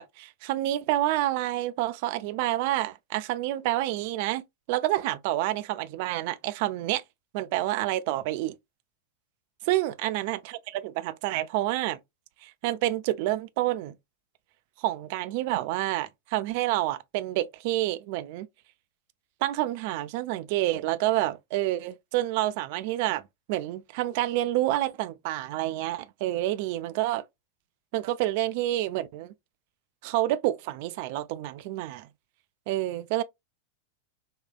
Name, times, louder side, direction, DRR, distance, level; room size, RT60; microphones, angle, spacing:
voice 1, 0.0-4.4 4.7-7.0 7.3-8.5 9.7-12.0 12.4-13.9 14.8-18.5 19.4-23.2 23.5-27.2 27.9-29.3 30.0-32.1 32.7-33.2, right 15 dB, 50° right, 0.3 m, -28 dB
3.5 x 2.3 x 2.3 m
figure-of-eight pair, 90°, 0 cm